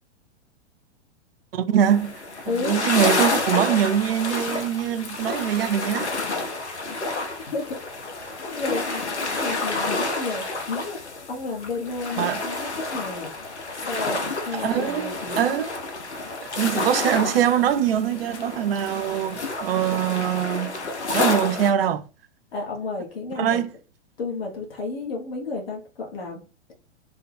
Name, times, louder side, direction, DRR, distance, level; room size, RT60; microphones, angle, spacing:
voice 1, 1.5-2.2 2.5-6.1 12.2-12.5 14.6-15.7 16.6-20.7 21.1-22.0 23.4-23.7, right 10 dB, 55° right, 0.5 m, -23 dB
sound 1, 1.8-21.7, left 3 dB, 75° left, 0.8 m, -29 dB
voice 2, 2.5-2.8 7.1-7.8 8.4-9.1 9.4-11.0 11.3-12.6 12.9-13.3 13.7-15.5 22.5-23.6 24.2-26.4, left 3 dB, 60° left, 1.2 m, -32 dB
3.3 x 2.2 x 3.4 m
figure-of-eight pair, 105°, 34 cm